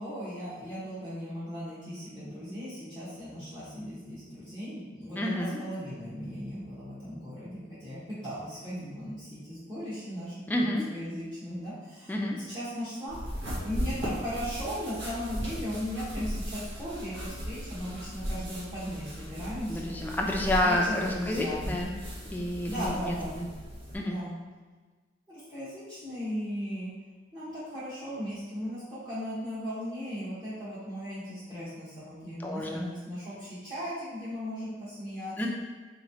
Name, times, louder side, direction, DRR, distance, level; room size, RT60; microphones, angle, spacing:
voice 1, 0.0-13.2 13.6-19.9 20.4-21.8 22.7-23.4 24.0-24.4 25.3-26.9 27.3-35.5, equal, 20° right, -14 dB, 1.2 m, -37 dB
voice 2, 5.2-5.6 10.5-10.8 12.1-12.3 19.7-21.9 22.3-23.5 23.9-24.2 32.4-32.9 35.4-35.5, left 1 dB, 10° left, -1 dB, 0.4 m, -29 dB
sound 1, 13.1-24.0, equal, 85° right, 1.0 m, -37 dB
3.6 x 3.0 x 2.8 m, 1.3 s
head